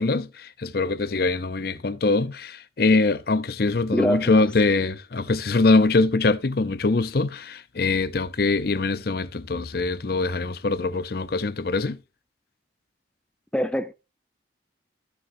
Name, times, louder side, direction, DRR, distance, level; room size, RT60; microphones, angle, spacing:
voice 1, 0.0-12.0, left 3 dB, 55° left, 0.6 m, -23 dB
voice 2, 3.9-4.4 13.5-13.9, equal, 5° left, 0.5 m, -24 dB
13.5 x 6.9 x 2.6 m
head